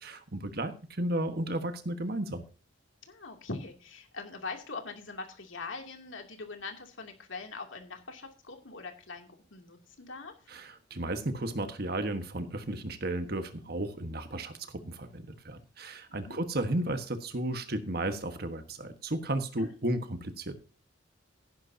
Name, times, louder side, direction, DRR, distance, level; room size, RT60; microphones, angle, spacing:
voice 1, 0.0-2.4 10.5-20.5, right 1 dB, 50° right, 8 dB, 1.4 m, -34 dB
voice 2, 3.1-10.3 16.1-16.4 19.6-19.8, left 3 dB, 75° left, 3 dB, 2.7 m, -42 dB
14.5 x 11.0 x 2.8 m, 0.36 s
head